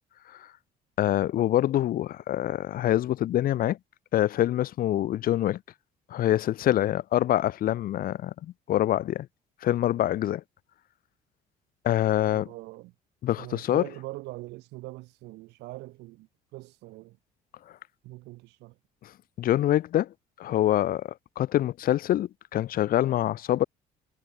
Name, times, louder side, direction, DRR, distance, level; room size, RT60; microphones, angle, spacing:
voice 1, 1.0-3.8 4.1-5.6 6.1-9.3 9.6-10.4 11.8-12.5 13.2-13.8 19.0-19.1 19.4-20.1 20.4-21.1 21.4-23.6, left 13 dB, 60° left, 0.8 m, -25 dB
voice 2, 12.3-12.9 13.4-17.2 18.0-18.7, right 20 dB, 90° right, 2.7 m, -42 dB
cardioid pair, 110°, 17 cm